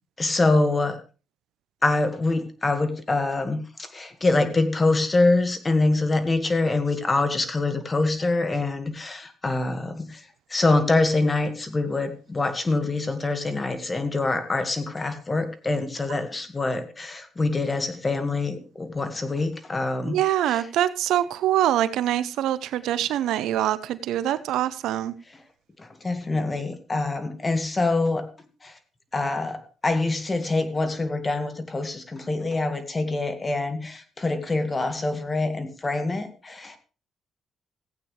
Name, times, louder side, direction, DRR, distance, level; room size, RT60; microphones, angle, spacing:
voice 1, 0.2-1.0 1.8-3.6 3.9-10.2 10.5-20.2 20.5-20.6 25.8-28.3 28.6-28.7 29.1-36.8, left 2 dB, 25° left, 1.8 m, -25 dB
voice 2, 20.0-25.1, right 12 dB, 85° right, 0.7 m, -24 dB
16.0 x 8.7 x 3.3 m
cardioid pair, 90°, 0 cm